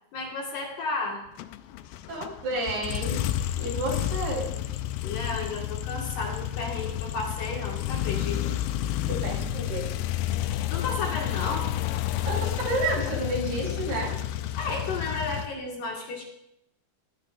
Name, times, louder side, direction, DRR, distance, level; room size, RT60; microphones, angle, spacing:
voice 1, 0.1-1.2 5.0-8.6 10.7-11.7 14.6-16.2, left 3 dB, 60° left, -1 dB, 3.1 m, -33 dB
sound 1, 1.4-15.5, left 13 dB, 85° left, 2.1 m, -30 dB
voice 2, 2.1-3.2 3.6-4.5 9.1-9.9 12.3-14.1, right 2 dB, 70° right, -4 dB, 5.6 m, -30 dB
18.5 x 11.5 x 2.5 m, 0.78 s
omnidirectional pair, 4.7 m